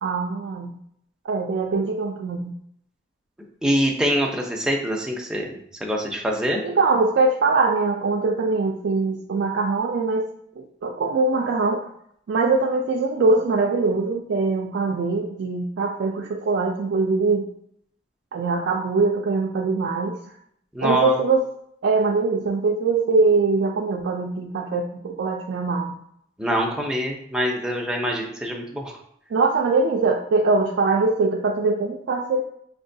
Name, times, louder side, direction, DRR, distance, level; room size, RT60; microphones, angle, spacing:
voice 1, 0.0-0.7 1.3-2.5 6.6-10.3 10.6-11.9 12.3-17.5 18.3-20.2 20.8-21.4 21.8-26.0 29.3-32.4, right 3 dB, 70° right, 1 dB, 0.3 m, -22 dB
voice 2, 3.6-5.6 5.8-6.6 20.7-21.2 26.4-28.9, equal, 5° right, 0 dB, 0.5 m, -24 dB
5.4 x 2.2 x 2.6 m, 0.71 s
head